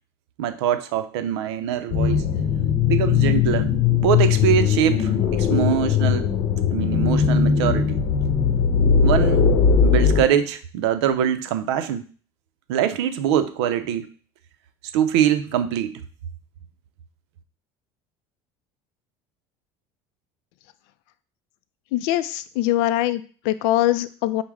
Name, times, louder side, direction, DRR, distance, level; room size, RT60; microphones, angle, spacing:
voice 1, 0.4-2.2 2.9-6.3 6.7-8.0 9.0-9.5 9.8-12.0 12.7-14.1 14.9-15.9, right 9 dB, 90° right, 10 dB, 0.5 m, -23 dB
sound 1, 1.9-10.2, left 7 dB, 60° left, 0.8 m, -19 dB
voice 2, 21.9-24.4, left 14 dB, 80° left, 13 dB, 0.4 m, -22 dB
6.1 x 2.1 x 3.5 m, 0.41 s
supercardioid pair, 110°, 14 cm